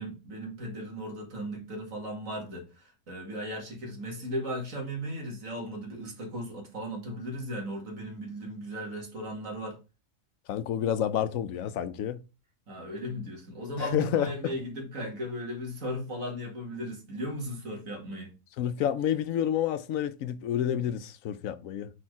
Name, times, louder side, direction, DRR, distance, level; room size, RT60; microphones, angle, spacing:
voice 1, 0.0-9.8 12.7-18.3, equal, 85° right, 2.4 m, -36 dB
voice 2, 10.5-12.2 13.8-14.5 18.6-21.9, left 10 dB, 90° left, 1.1 m, -29 dB
4.8 x 4.4 x 4.7 m
omnidirectional pair, 1.4 m